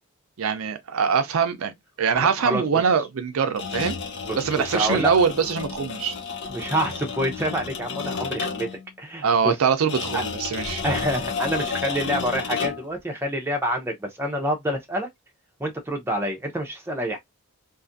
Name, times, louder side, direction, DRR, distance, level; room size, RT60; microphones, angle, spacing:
voice 1, 0.4-4.0 4.3-6.2 9.2-10.8, right 6 dB, 70° right, 0.5 m, -23 dB
voice 2, 2.1-2.6 4.3-5.1 6.5-8.7 9.0-9.5 10.1-10.2 10.8-15.1 15.6-17.2, equal, 10° right, 0.6 m, -27 dB
sound 1, 3.5-8.8 9.9-13.0, left 5 dB, 50° left, 0.6 m, -31 dB
2.6 x 2.4 x 2.5 m
head